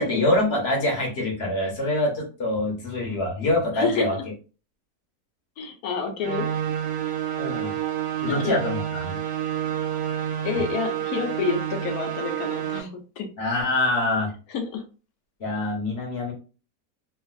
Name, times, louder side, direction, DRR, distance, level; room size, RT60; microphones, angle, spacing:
voice 1, 0.0-4.1 7.4-7.7 8.2-9.2 13.4-14.3 15.4-16.3, left 2 dB, 45° left, -1 dB, 1.0 m, -25 dB
voice 2, 3.7-4.1 5.6-6.5 8.3-8.5 10.4-13.3 14.5-14.8, left 5 dB, 70° left, 5 dB, 1.1 m, -28 dB
sound 1, 6.2-12.8, right 10 dB, 90° right, 1.2 m, -29 dB
3.3 x 2.3 x 2.3 m, 0.34 s
omnidirectional pair, 1.7 m